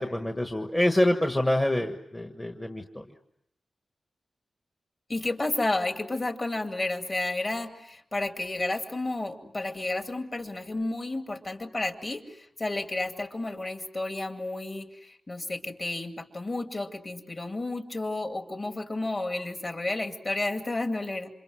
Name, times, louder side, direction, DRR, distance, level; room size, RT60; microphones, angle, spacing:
voice 1, 0.0-3.0, left 1 dB, 15° left, 4 dB, 1.4 m, -26 dB
voice 2, 5.1-21.3, left 2 dB, 30° left, 5 dB, 2.4 m, -31 dB
28.5 x 27.0 x 6.3 m, 0.74 s
wide cardioid pair, 165°, 0 cm